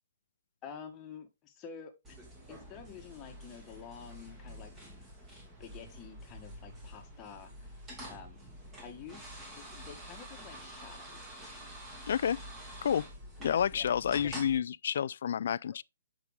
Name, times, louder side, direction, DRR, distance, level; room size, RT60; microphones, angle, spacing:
voice 1, 0.6-2.2 2.5-4.8 5.6-7.7 8.1-8.4 8.8-11.2 13.4-13.8 14.1-14.3, left 7 dB, 20° left, 1.6 m, -49 dB
sound 1, 2.0-14.6, equal, 10° right, 2.2 m, -48 dB
voice 2, 12.1-12.4 12.8-13.1 13.4-15.8, left 8 dB, 55° left, 0.3 m, -29 dB
8.0 x 6.1 x 3.5 m
hypercardioid pair, 160°, 0 cm